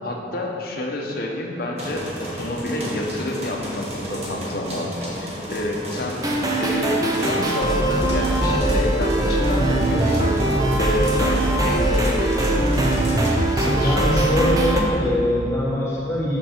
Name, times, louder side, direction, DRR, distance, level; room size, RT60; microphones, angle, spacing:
voice 1, 0.0-6.2 6.6-10.5 10.8-12.8 13.5-14.1, left 1 dB, 55° left, 0 dB, 0.9 m, -29 dB
sound 1, 1.8-13.3, equal, 35° right, 1.3 m, -32 dB
sound 2, 6.2-14.8, right 1 dB, 20° right, 0.6 m, -21 dB
voice 2, 13.7-16.4, equal, 15° left, -7 dB, 1.4 m, -23 dB
6.4 x 6.0 x 4.3 m, 2.8 s
head